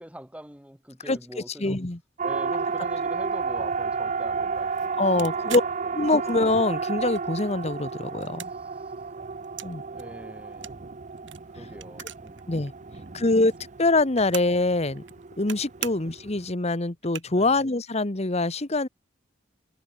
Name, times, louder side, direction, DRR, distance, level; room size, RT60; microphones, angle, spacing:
voice 1, 0.0-1.8 2.2-6.0 8.4-8.9 9.9-10.9 11.2-11.3 11.5-12.4 12.8-13.3 15.8-16.0 17.3-17.6, equal, 5° right, 4.9 m, -45 dB
voice 2, 1.6-2.0 5.0-5.6 5.9-8.5 9.6-9.8 12.5-12.7 13.1-13.5 13.8-15.0 15.4-18.9, left 2 dB, 35° left, 1.3 m, -24 dB
Siren, 2.2-16.5, right 5 dB, 40° right, 0.7 m, -32 dB
sound 1, 5.2-6.6 7.0-7.8 8.1-9.7 10.0-12.4 12.7-12.8 12.9-14.6 15.0-15.6 15.8-16.2 16.7-16.8 17.0-17.6, right 10 dB, 90° right, 5.3 m, -39 dB
head